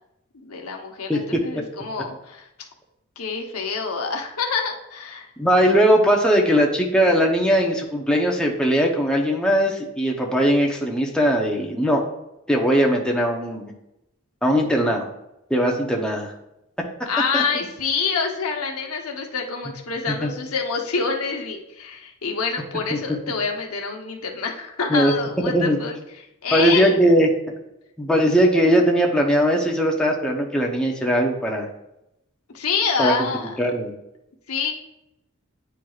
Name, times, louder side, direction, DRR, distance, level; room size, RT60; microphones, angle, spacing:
voice 1, 0.4-2.5 3.2-5.3 17.0-27.0 32.5-33.6 34.5-34.7, left 5 dB, 80° left, 2 dB, 0.9 m, -27 dB
voice 2, 5.4-12.0 12.5-13.7 14.4-15.1 15.5-16.3 17.3-17.4 20.2-20.3 24.9-25.1 25.5-25.8 26.5-27.3 28.0-31.7 33.0-33.1 33.6-33.9, equal, 5° left, 0 dB, 0.7 m, -19 dB
9.1 x 4.5 x 2.4 m, 0.86 s
head